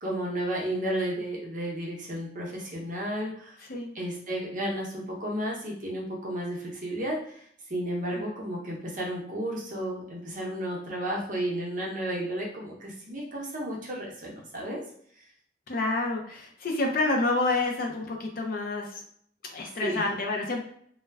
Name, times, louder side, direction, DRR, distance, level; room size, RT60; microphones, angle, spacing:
voice 1, 0.0-3.6 3.9-7.4 7.7-14.8 19.8-20.0, right 1 dB, 45° right, -2 dB, 0.7 m, -32 dB
voice 2, 3.6-3.9 8.1-8.3 15.7-19.0 19.5-20.6, left 2 dB, 50° left, 2 dB, 0.5 m, -28 dB
2.2 x 2.1 x 3.3 m, 0.64 s
head